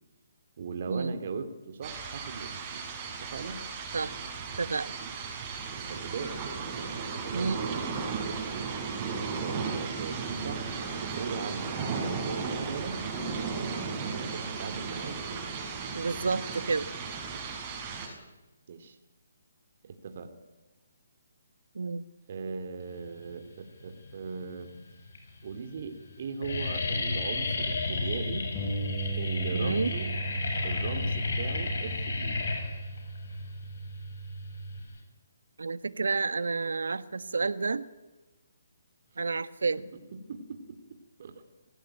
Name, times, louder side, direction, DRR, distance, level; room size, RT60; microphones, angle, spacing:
voice 1, 0.6-3.6 5.7-6.4 6.7-8.8 9.3-13.0 14.1-15.2 18.7-19.0 19.8-20.3 22.3-24.7 25.4-28.5 29.1-30.1 30.6-32.4 39.9-41.3, right 5 dB, 50° right, 7 dB, 2.8 m, -39 dB
sound 1, 1.8-18.1, right 5 dB, 25° right, 6.6 m, -35 dB
voice 2, 4.6-4.9 7.3-7.6 15.9-16.9 21.7-22.0 29.5-29.9 35.6-37.8 39.2-39.8, right 4 dB, 75° right, 14 dB, 1.4 m, -30 dB
sound 2, 23.8-24.4 25.1-25.2 25.4-25.8 26.1-35.0, left 3 dB, 65° left, 7.4 m, -32 dB
Bass guitar, 28.5-34.8, right 3 dB, 15° left, 3.5 m, -37 dB
26.0 x 17.5 x 9.2 m, 1.1 s
figure-of-eight pair, 145°, 0 cm